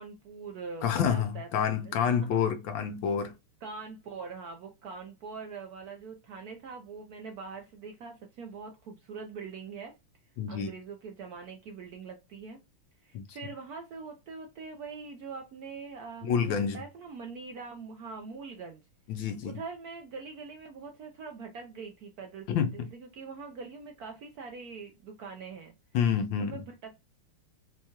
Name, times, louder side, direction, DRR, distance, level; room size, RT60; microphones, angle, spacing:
voice 1, 0.0-2.4 3.6-9.9 10.5-12.6 13.0-18.8 19.1-22.5 22.7-25.7 26.4-26.9, right 5 dB, 80° right, 0.8 m, -43 dB
voice 2, 0.8-3.3 10.4-10.7 13.1-13.2 16.2-16.8 19.1-19.6 22.5-22.9 25.9-26.6, left 7 dB, 75° left, 1.2 m, -28 dB
4.5 x 2.3 x 2.8 m
omnidirectional pair, 2.4 m